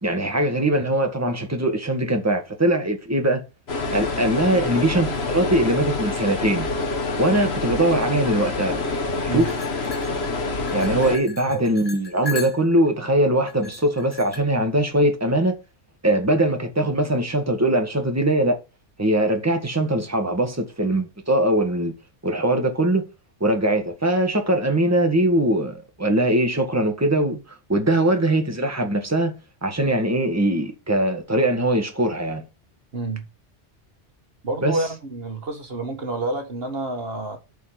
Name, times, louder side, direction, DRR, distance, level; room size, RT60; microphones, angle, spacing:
voice 1, 0.0-3.4 3.9-6.7 7.2-8.8 9.2-9.5 10.7-15.5 16.0-18.6 19.0-21.9 22.2-23.1 23.4-27.4 27.7-29.4 29.6-32.4 34.6-34.8, right 1 dB, 15° right, 1.8 m, -21 dB
sound 1, 3.7-11.2, left 3 dB, 65° left, 1.7 m, -27 dB
sound 2, 9.4-12.9 13.5-14.4, left 5 dB, 45° left, 1.9 m, -37 dB
voice 2, 32.9-33.3 34.4-37.4, right 2 dB, 60° right, 1.7 m, -28 dB
8.2 x 4.7 x 6.0 m
omnidirectional pair, 1.1 m